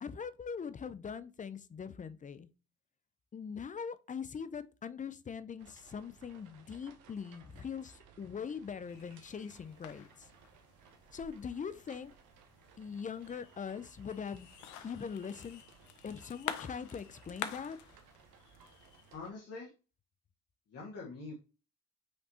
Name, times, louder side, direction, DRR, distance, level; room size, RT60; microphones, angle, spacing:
voice 1, 0.0-2.5 3.3-10.3 11.1-12.1 12.8-14.5 14.8-15.6 16.0-17.8, left 6 dB, 25° left, 0.5 m, -42 dB
sound 1, 5.6-19.3, right 7 dB, 70° right, 1.0 m, -61 dB
sound 2, 8.9-19.2, left 10 dB, 65° left, 0.7 m, -48 dB
voice 2, 19.1-19.7 20.7-21.3, left 3 dB, 50° left, 1.7 m, -44 dB
5.6 x 3.3 x 2.8 m
supercardioid pair, 75°, 31 cm